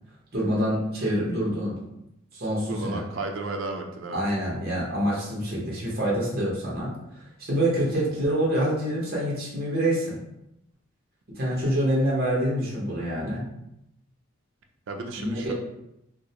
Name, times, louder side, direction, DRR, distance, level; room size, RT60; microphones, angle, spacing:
voice 1, 0.3-1.8 2.4-3.0 4.1-6.9 7.4-10.2 11.3-13.4 15.1-15.5, equal, 50° right, -5 dB, 0.8 m, -26 dB
voice 2, 2.3-4.2 7.9-8.1 14.9-15.5, right 3 dB, 70° right, 3 dB, 0.4 m, -34 dB
2.4 x 2.0 x 2.7 m, 0.82 s
head